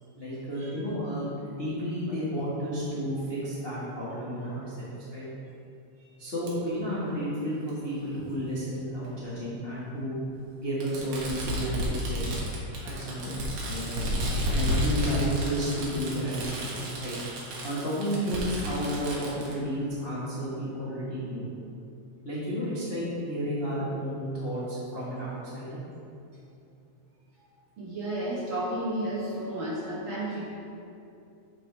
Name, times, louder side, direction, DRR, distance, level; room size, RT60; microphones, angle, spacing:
voice 1, 0.1-5.3 6.2-10.2 10.5-12.4 12.8-14.0 14.5-17.2 17.6-21.5 22.2-25.8, equal, 35° left, -10 dB, 0.9 m, -32 dB
Fireworks, 6.5-6.6 7.7-7.8 9.1-9.2 10.8-19.5, equal, 70° right, 2.5 m, -31 dB
voice 2, 27.8-30.5, right 1 dB, 55° right, -7 dB, 1.7 m, -32 dB
11.0 x 4.9 x 3.3 m, 2.7 s
omnidirectional pair, 3.3 m